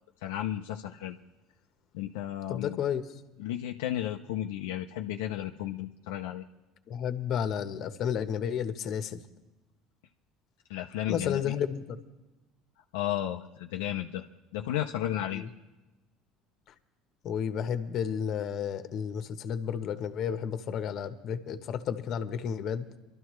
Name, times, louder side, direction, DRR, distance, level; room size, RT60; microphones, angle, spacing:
voice 1, 0.2-1.2 1.9-2.8 3.4-6.4 10.7-11.5 12.9-14.2 14.5-15.5, left 12 dB, 85° left, 2 dB, 0.6 m, -33 dB
voice 2, 2.5-3.0 6.9-9.2 11.1-12.0 15.3-15.5 17.2-22.9, left 8 dB, 55° left, 9 dB, 1.1 m, -32 dB
23.5 x 12.5 x 3.2 m, 1.1 s
supercardioid pair, 90°, 0 cm